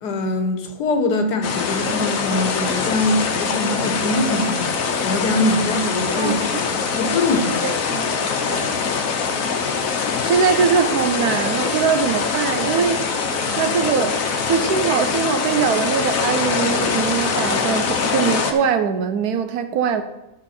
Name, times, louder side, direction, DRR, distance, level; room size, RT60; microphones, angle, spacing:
voice 1, 0.0-4.7 5.0-7.7, left 2 dB, 85° left, 6 dB, 1.6 m, -23 dB
sound 1, 1.4-18.5, left 5 dB, 60° left, 1.2 m, -23 dB
voice 2, 7.6-8.1 8.4-8.8 10.2-13.0 13.5-14.2 14.5-20.0, right 7 dB, 75° right, 9 dB, 1.2 m, -22 dB
11.0 x 6.2 x 4.3 m, 0.94 s
omnidirectional pair, 1.7 m